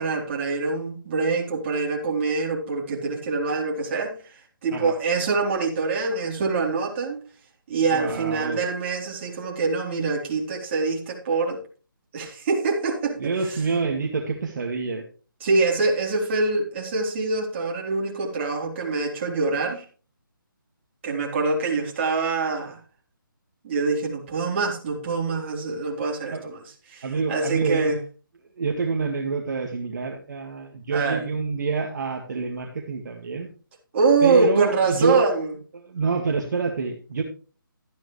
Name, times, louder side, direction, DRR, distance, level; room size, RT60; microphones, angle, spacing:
voice 1, 0.0-7.2 7.7-11.6 12.1-13.6 15.4-19.8 21.0-22.8 23.6-26.6 26.9-28.0 30.9-31.2 33.9-35.6, right 4 dB, 35° right, -1 dB, 4.0 m, -25 dB
voice 2, 7.9-8.6 13.2-15.0 26.3-26.4 27.0-27.9 28.6-33.5 34.2-35.2 35.8-37.2, right 4 dB, 55° right, 1 dB, 2.2 m, -27 dB
13.5 x 10.5 x 3.3 m, 0.38 s
figure-of-eight pair, 155°, 12 cm